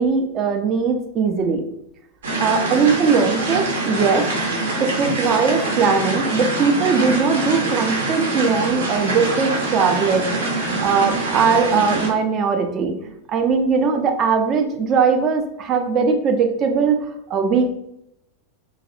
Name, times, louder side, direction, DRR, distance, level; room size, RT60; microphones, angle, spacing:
voice 1, 0.0-1.6 2.4-4.3 4.8-10.3 10.8-17.0 17.3-17.7, right 5 dB, 30° right, 4 dB, 0.4 m, -20 dB
sound 1, 2.2-12.1, right 2 dB, 65° right, 0.7 m, -24 dB
2.3 x 2.1 x 2.6 m, 0.78 s
figure-of-eight pair, 90°, 0 cm